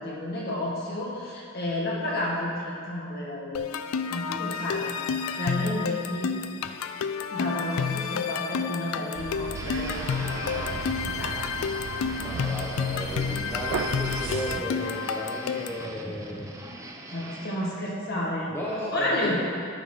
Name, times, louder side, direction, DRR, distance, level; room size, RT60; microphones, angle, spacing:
voice 1, 0.0-3.7 4.1-4.9 5.3-6.4 7.3-10.7 11.1-11.4 17.1-18.5 18.9-19.4, left 1 dB, 50° left, -4 dB, 1.6 m, -31 dB
sound 1, 3.5-15.9, left 6 dB, 90° left, 0.3 m, -30 dB
sound 2, 9.2-14.6, right 6 dB, 70° right, 0.3 m, -36 dB
sound 3, 9.5-17.6, right 1 dB, 15° right, 0.6 m, -41 dB
voice 2, 12.2-16.5 18.5-19.4, left 1 dB, 10° left, -6 dB, 0.8 m, -34 dB
11.0 x 4.2 x 4.8 m, 2.6 s
head